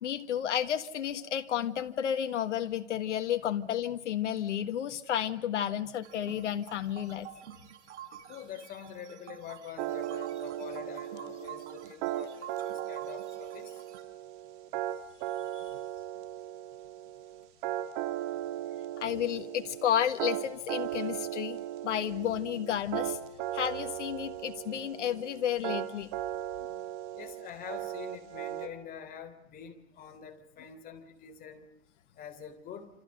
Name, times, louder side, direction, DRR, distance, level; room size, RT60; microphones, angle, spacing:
voice 1, 0.0-7.3 15.5-15.6 19.0-21.6 21.8-23.2 23.5-26.1, left 10 dB, 80° left, 8 dB, 1.6 m, -32 dB
sound 1, 6.0-14.0, right 9 dB, 75° right, 4.6 m, -49 dB
voice 2, 8.3-13.8 27.2-31.7 32.2-32.9, left 8 dB, 25° left, 7 dB, 3.6 m, -45 dB
sound 2, 9.8-28.7, right 13 dB, 45° right, 3.0 m, -37 dB
28.0 x 27.5 x 6.6 m, 0.76 s
hypercardioid pair, 145°, 35 cm